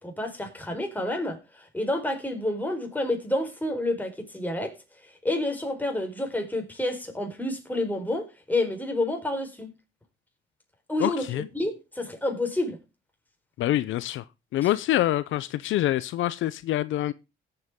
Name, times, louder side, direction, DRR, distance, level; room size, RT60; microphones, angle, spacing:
voice 1, 0.0-4.7 5.2-9.7 10.9-11.2 11.5-12.8, left 1 dB, 10° left, 4.3 m, -29 dB
voice 2, 11.0-11.4 13.6-14.2 14.5-17.1, left 14 dB, 80° left, 0.6 m, -26 dB
17.5 x 7.9 x 3.6 m
cardioid pair, 90°, 20 cm